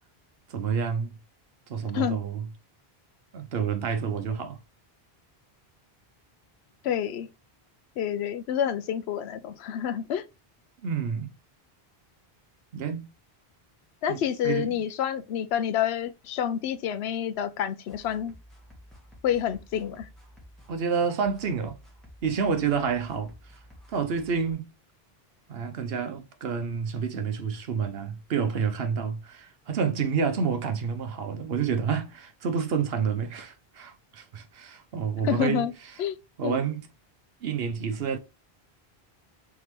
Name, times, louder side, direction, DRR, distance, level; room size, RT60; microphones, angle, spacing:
voice 1, 0.5-1.2 1.7-2.5 3.3-4.6 10.8-11.3 12.7-13.1 14.1-14.8 20.7-21.8 22.2-23.3 23.9-24.7 25.5-35.7 36.4-36.9 37.4-38.2, right 6 dB, 70° right, 1.0 m, -29 dB
voice 2, 6.8-7.3 8.0-10.2 14.0-18.3 19.2-20.1 35.2-35.7 36.0-36.2 36.4-36.5, left 9 dB, 90° left, 0.8 m, -28 dB
sound 1, 17.9-24.5, equal, ahead, 1.6 m, -52 dB
3.7 x 3.7 x 3.0 m
omnidirectional pair, 1.0 m